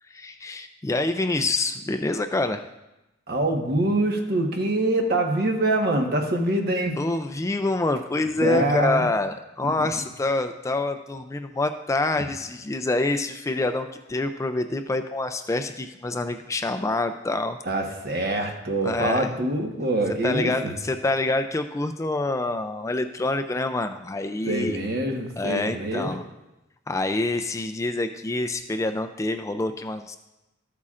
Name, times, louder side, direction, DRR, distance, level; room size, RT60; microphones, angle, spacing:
voice 1, 0.1-2.7 7.0-17.6 18.8-19.3 20.2-24.8 25.4-26.2 26.9-30.2, left 2 dB, 15° left, 8 dB, 0.3 m, -26 dB
voice 2, 3.3-6.9 8.4-9.1 9.6-9.9 17.6-20.7 24.5-26.1, right 1 dB, 55° right, 2 dB, 1.2 m, -25 dB
13.5 x 8.3 x 2.5 m, 0.97 s
head